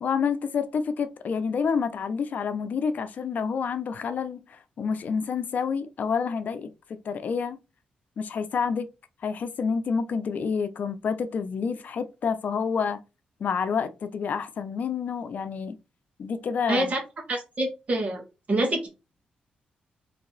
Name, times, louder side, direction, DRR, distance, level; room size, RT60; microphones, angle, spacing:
voice 1, 0.0-7.6 8.2-8.9 9.2-13.0 13.4-15.8 16.2-16.9, left 6 dB, 65° left, 0.5 m, -28 dB
voice 2, 16.7-17.0 17.3-18.2 18.5-18.9, right 1 dB, 50° right, 1.7 m, -26 dB
3.3 x 2.9 x 3.9 m
cardioid pair, 80°, 3 cm